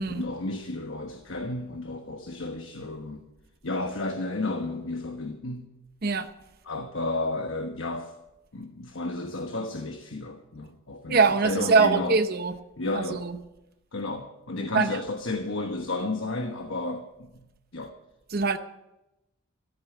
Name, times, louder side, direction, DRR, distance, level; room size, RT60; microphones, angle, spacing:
voice 1, 0.1-3.2 3.6-5.7 6.7-8.1 8.5-12.2 12.8-13.2 13.9-17.5 17.7-17.9, left 2 dB, 65° left, 1.2 m, -32 dB
voice 2, 11.1-12.6 12.9-13.4 14.7-15.0 18.3-18.6, right 4 dB, 45° right, 0.8 m, -23 dB
14.5 x 8.6 x 8.2 m
head